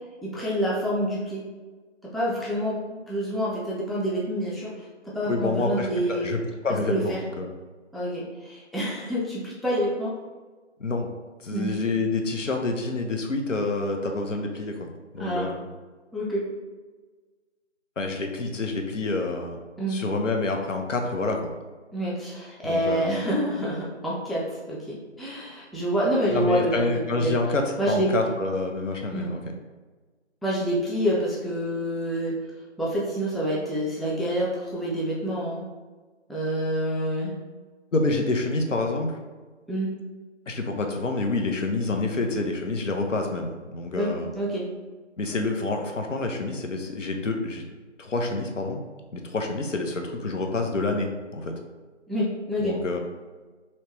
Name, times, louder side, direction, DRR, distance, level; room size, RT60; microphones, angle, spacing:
voice 1, 0.2-1.4 2.1-4.9 5.1-6.3 6.9-7.2 7.9-10.1 11.5-11.7 15.2-15.5 16.1-16.4 19.8-20.0 21.9-27.4 27.8-28.1 29.1-29.3 30.4-32.3 32.8-35.6 36.3-37.3 39.7-39.9 43.9-44.1 44.3-44.6 52.1-52.8, equal, ahead, -6 dB, 0.4 m, -27 dB
voice 2, 5.3-7.5 10.8-11.1 11.4-14.9 15.1-15.7 18.0-19.6 19.9-21.5 22.6-23.1 26.3-29.4 37.9-39.1 40.5-44.3 45.2-47.6 48.0-48.8 49.1-51.6 52.6-53.0, left 3 dB, 85° left, 3 dB, 0.8 m, -27 dB
3.2 x 2.9 x 3.1 m, 1.3 s
figure-of-eight pair, 180°, 36 cm